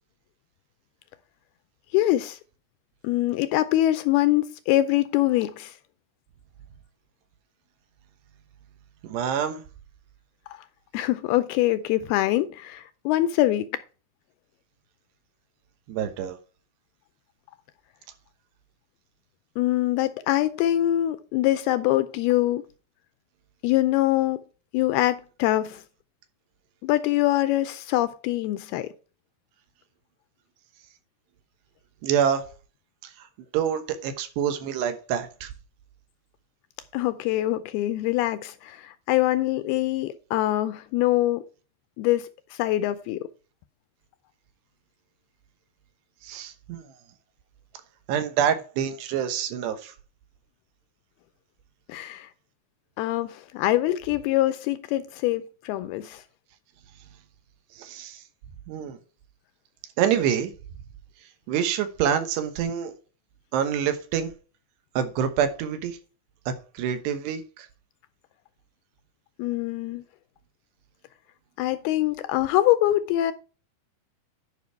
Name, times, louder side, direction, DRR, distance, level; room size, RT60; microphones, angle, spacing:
voice 1, 1.9-2.4 3.0-5.7 10.5-10.6 10.9-13.8 19.6-22.6 23.6-24.4 24.7-25.8 26.8-28.9 36.9-41.4 42.0-43.3 51.9-52.3 53.0-56.2 69.4-70.0 71.6-73.3, left 15 dB, 80° left, 2.3 m, -24 dB
voice 2, 9.0-9.6 15.9-16.4 32.0-32.4 33.0-33.3 33.5-35.5 46.2-46.8 48.1-49.9 57.7-58.2 58.7-59.0 60.0-60.5 61.5-62.9 63.5-64.3 65.0-66.0 66.5-67.7, right 8 dB, 80° right, 3.3 m, -26 dB
11.0 x 5.4 x 4.6 m
omnidirectional pair, 4.8 m